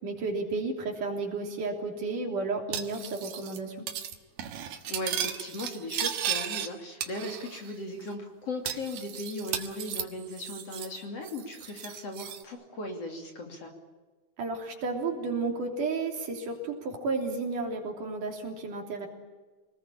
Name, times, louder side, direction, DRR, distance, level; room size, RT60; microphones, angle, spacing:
voice 1, 0.0-3.8 14.4-19.1, right 3 dB, 60° right, 2 dB, 4.6 m, -32 dB
Cutlery silverware, 2.7-3.6 3.9-4.1 4.4-6.7 7.0-7.7 8.0-8.1 8.7-11.0 11.2-12.4, right 9 dB, 85° right, 3.5 m, -35 dB
voice 2, 4.9-13.7, left 1 dB, 45° left, 3 dB, 3.5 m, -37 dB
27.5 x 20.0 x 8.7 m, 1.4 s
omnidirectional pair, 4.3 m